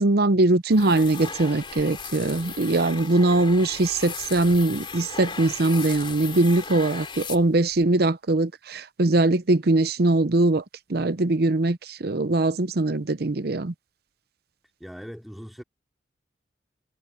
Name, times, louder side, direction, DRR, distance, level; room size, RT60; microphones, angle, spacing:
voice 1, 0.0-10.6 10.9-13.7, right 2 dB, 60° right, 0.8 m, -21 dB
sound 1, 0.7-7.8, left 5 dB, 30° left, 3.0 m, -37 dB
voice 2, 14.8-15.6, equal, ahead, 2.6 m, -40 dB
head